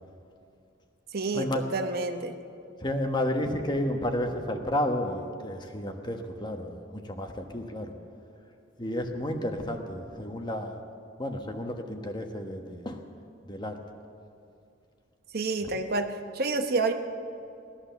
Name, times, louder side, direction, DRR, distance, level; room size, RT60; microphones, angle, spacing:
voice 1, 1.1-2.4 15.3-16.1 16.3-16.9, right 3 dB, 55° right, 6 dB, 1.0 m, -28 dB
voice 2, 2.8-7.9 8.8-10.8 11.2-13.0 13.5-13.7, left 1 dB, 25° left, 4 dB, 1.2 m, -31 dB
17.5 x 11.5 x 7.0 m, 2.6 s
head